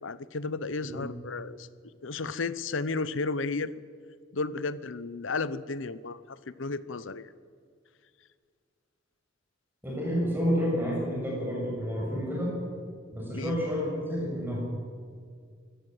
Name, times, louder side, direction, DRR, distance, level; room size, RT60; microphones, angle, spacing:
voice 1, 0.0-1.7 2.0-3.7 4.3-7.3 13.3-13.6, left 3 dB, 80° left, 16 dB, 0.8 m, -33 dB
voice 2, 9.8-12.5 13.1-14.7, equal, 10° right, -4 dB, 7.2 m, -30 dB
24.0 x 17.0 x 8.0 m, 2.1 s
head